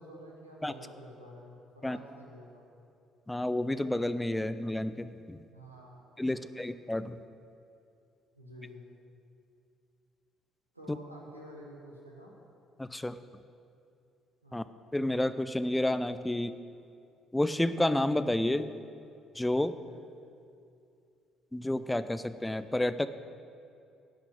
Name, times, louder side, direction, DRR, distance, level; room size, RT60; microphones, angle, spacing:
voice 1, 0.0-2.6 5.5-6.6 8.3-8.8 10.7-12.3 14.4-14.6 19.8-20.0, equal, 90° right, -3 dB, 1.4 m, -50 dB
voice 2, 3.3-5.4 6.2-7.2 10.9-11.0 12.8-13.2 14.5-14.7 14.9-16.6 17.3-18.7 19.3-19.8 21.5-23.1, left 1 dB, 10° left, 13 dB, 0.5 m, -30 dB
10.0 x 5.9 x 8.6 m, 2.5 s
figure-of-eight pair, 45°, 0 cm